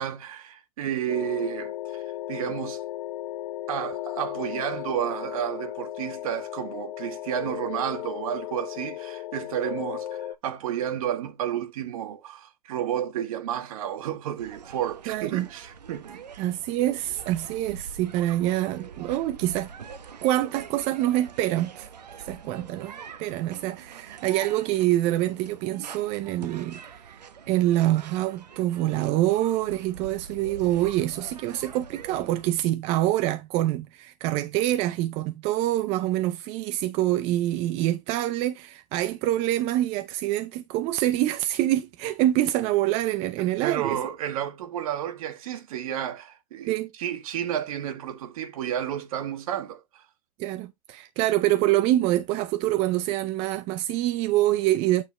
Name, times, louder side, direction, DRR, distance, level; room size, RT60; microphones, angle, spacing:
voice 1, 0.0-2.0 2.3-2.8 3.7-16.5 43.4-46.7 47.0-50.0, right 10 dB, 60° right, 1.6 m, -31 dB
sound 1, 1.1-10.3, left 13 dB, 45° left, 0.6 m, -35 dB
sound 2, 14.4-32.5, right 6 dB, 90° right, 1.0 m, -44 dB
voice 2, 15.1-15.5 16.4-19.7 20.2-21.9 22.2-27.2 27.5-44.0 46.7-46.9 50.4-55.0, right 14 dB, 30° right, 0.5 m, -26 dB
8.8 x 3.9 x 3.2 m
hypercardioid pair, 130°, 21 cm